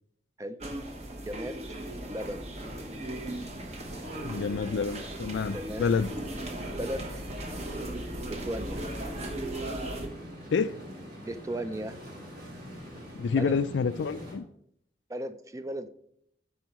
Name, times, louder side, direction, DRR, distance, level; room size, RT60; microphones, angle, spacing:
sound 1, 0.6-10.1, right 1 dB, 35° right, 1.0 m, -37 dB
voice 1, 1.3-1.6 2.1-2.5 5.5-5.9 6.8-7.0 8.3-8.8 11.2-12.0 13.4-13.6 15.1-15.9, right 1 dB, 20° right, 0.4 m, -35 dB
sound 2, 3.2-14.4, equal, 55° right, 2.3 m, -45 dB
voice 2, 4.2-6.1 10.5-10.8 13.2-14.5, left 5 dB, 90° left, 0.4 m, -28 dB
12.5 x 5.4 x 3.1 m
head